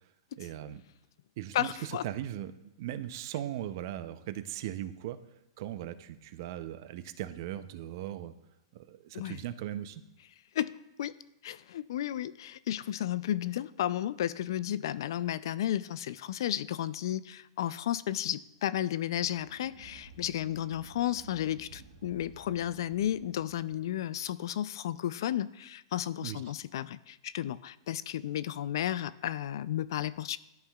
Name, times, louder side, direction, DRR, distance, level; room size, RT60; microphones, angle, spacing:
voice 1, 0.4-0.8 1.4-2.5 2.8-5.2 5.6-8.3 8.7-10.0 26.2-26.4, right 12 dB, 50° right, 12 dB, 0.5 m, -38 dB
voice 2, 1.5-2.0 9.1-9.4 10.6-11.2 11.4-30.4, left 11 dB, 65° left, 17 dB, 0.3 m, -33 dB
sound 1, 19.1-23.9, right 4 dB, 75° right, 1.1 m, -54 dB
12.5 x 5.6 x 2.3 m, 0.92 s
supercardioid pair, 160°, 2 cm